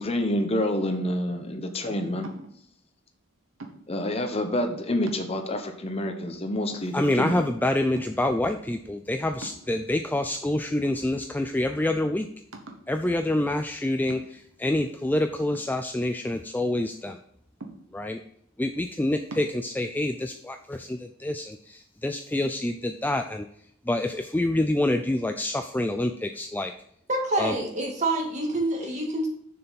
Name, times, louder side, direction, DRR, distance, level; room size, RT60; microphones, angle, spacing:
voice 1, 0.0-2.3 3.9-7.5, left 1 dB, 30° left, 6 dB, 0.9 m, -28 dB
sound 1, 0.9-1.3 2.2-2.7 3.6-4.1 4.6-4.7 5.0-5.7 6.2-6.3 6.7-7.5 8.0-8.4 9.4-10.1 10.8-11.5 11.8-11.9 12.5-13.0 14.1-14.6 15.5-16.4 17.6-18.2 19.3-19.6, right 2 dB, 85° right, 1.2 m, -44 dB
voice 2, 6.9-12.3 12.9-17.2 17.9-18.2 18.6-23.5 23.9-26.7 27.4-27.6, left 1 dB, 10° left, 6 dB, 0.4 m, -27 dB
voice 3, 27.1-29.3, right 2 dB, 35° right, 1 dB, 1.9 m, -27 dB
6.8 x 6.7 x 4.1 m, 0.69 s
head